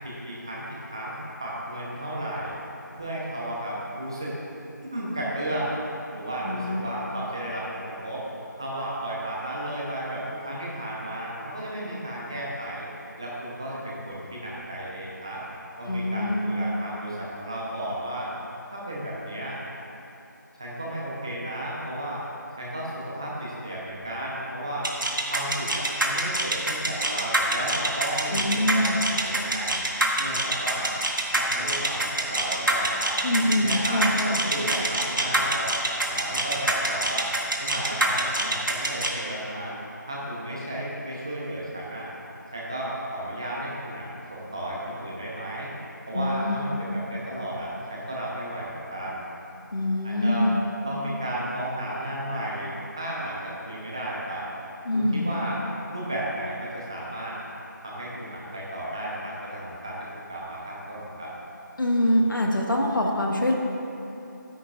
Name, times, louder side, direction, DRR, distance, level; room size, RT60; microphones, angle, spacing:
voice 1, 0.0-2.5 2.9-4.3 4.8-5.8 6.1-8.2 8.6-12.9 13.2-15.4 15.8-18.3 18.7-19.6 20.6-22.2 22.6-24.9 25.3-28.4 28.7-29.8 30.2-30.9 31.3-33.2 33.5-37.3 37.6-39.7 40.1-42.1 42.5-45.7 46.1-49.3 50.0-50.5 50.8-54.5 54.9-55.6 55.9-57.3 57.8-61.3, right 1 dB, 15° right, -6 dB, 0.8 m, -33 dB
voice 2, 6.4-6.9 15.9-16.6 28.3-29.0 33.2-34.4 46.1-46.7 49.7-50.5 54.8-55.3 61.8-63.5, left 1 dB, 80° left, 0 dB, 1.5 m, -24 dB
sound 1, 24.8-39.1, right 2 dB, 75° right, 1.3 m, -25 dB
12.5 x 9.5 x 2.4 m, 2.9 s
figure-of-eight pair, 175°, 11 cm